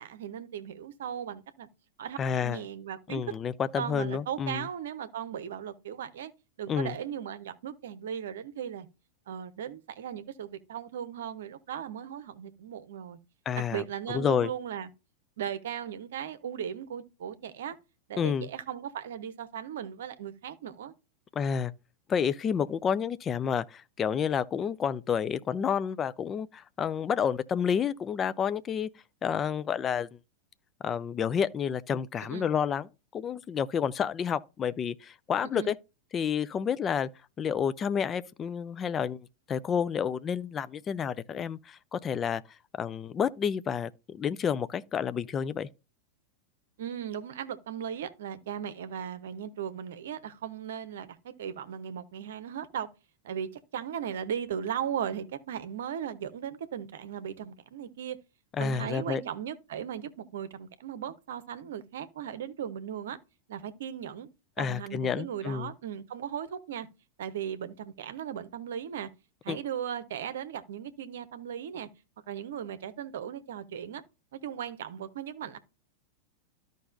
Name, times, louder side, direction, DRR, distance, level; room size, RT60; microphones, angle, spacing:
voice 1, 0.0-1.7 2.0-3.3 3.8-6.3 6.6-8.9 9.3-13.2 13.7-14.9 15.4-17.8 18.1-20.9 32.2-32.5 35.5-35.7 46.8-52.9 53.2-58.2 58.6-63.2 63.5-64.3 64.6-66.9 67.2-69.1 69.4-71.9 72.3-74.0 74.3-75.6, right 9 dB, 60° right, 0.8 m, -37 dB
voice 2, 2.2-2.6 3.1-4.6 6.7-6.9 13.5-13.8 14.1-14.5 18.2-18.5 21.4-21.7 22.1-28.9 29.2-30.1 30.8-35.8 36.1-37.1 37.4-39.2 39.5-42.4 42.8-45.7 58.6-59.2 64.6-65.7 69.5-69.6, left 7 dB, 25° left, 0.4 m, -30 dB
13.5 x 5.3 x 2.5 m
figure-of-eight pair, 90°, 0 cm